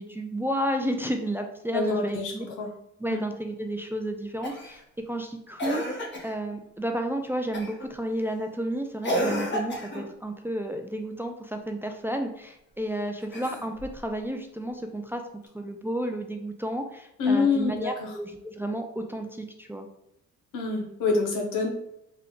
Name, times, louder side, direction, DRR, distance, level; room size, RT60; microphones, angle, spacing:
voice 1, 0.0-2.5 3.0-15.2 15.5-19.9, right 1 dB, 10° right, 4 dB, 0.3 m, -32 dB
voice 2, 1.7-2.7 3.1-3.2 17.2-18.2 20.5-21.7, left 4 dB, 85° left, 1 dB, 0.9 m, -26 dB
Cough, 4.4-4.8 5.6-6.4 7.5-7.9 9.0-10.1 13.2-14.0 15.5-15.6, equal, 35° left, 1.0 m, -31 dB
3.4 x 2.2 x 3.7 m, 0.80 s
cardioid pair, 90°, 30 cm